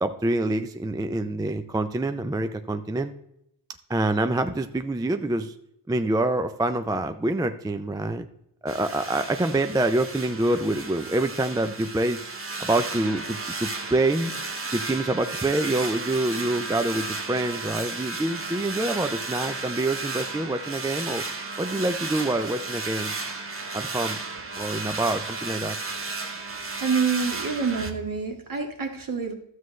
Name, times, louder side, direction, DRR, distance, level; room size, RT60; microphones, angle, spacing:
voice 1, 0.0-3.1 3.9-5.5 5.9-8.3 8.6-12.3 12.6-14.3 14.7-21.2 21.6-23.1 23.7-24.2 24.6-25.8, right 2 dB, 10° right, 8 dB, 0.3 m, -26 dB
sound 1, 8.7-27.9, right 3 dB, 30° right, 1.1 m, -34 dB
voice 2, 26.8-29.3, right 5 dB, 45° right, 3 dB, 1.6 m, -27 dB
12.5 x 7.7 x 3.1 m, 0.79 s
wide cardioid pair, 135°, 45 cm